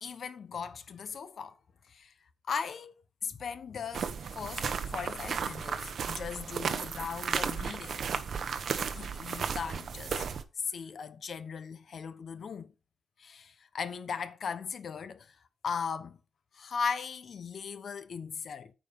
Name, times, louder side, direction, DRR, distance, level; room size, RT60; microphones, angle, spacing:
voice 1, 0.0-1.6 1.9-2.1 2.5-2.9 3.2-8.0 8.9-10.3 10.6-12.7 13.2-15.4 15.6-16.2 16.5-18.7, left 6 dB, 60° left, 1.0 m, -38 dB
sound 1, 3.9-10.4, right 6 dB, 65° right, 1.0 m, -34 dB
9.2 x 5.2 x 5.6 m
wide cardioid pair, 125°, 0 cm